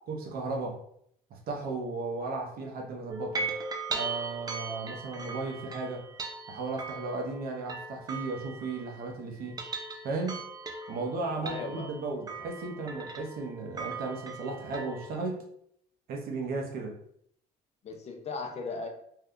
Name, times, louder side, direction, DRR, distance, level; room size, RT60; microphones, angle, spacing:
voice 1, 0.1-0.8 1.3-3.5 3.9-6.0 6.5-9.6 10.0-10.4 10.9-15.4 16.1-17.0, right 3 dB, 60° right, 1 dB, 0.8 m, -35 dB
sound 1, 3.1-9.1 9.4-15.1, right 3 dB, 25° right, 0.4 m, -39 dB
voice 2, 11.4-11.9 17.8-18.9, left 4 dB, 40° left, 3 dB, 0.5 m, -37 dB
2.7 x 2.2 x 3.6 m, 0.69 s
cardioid pair, 110°, 17 cm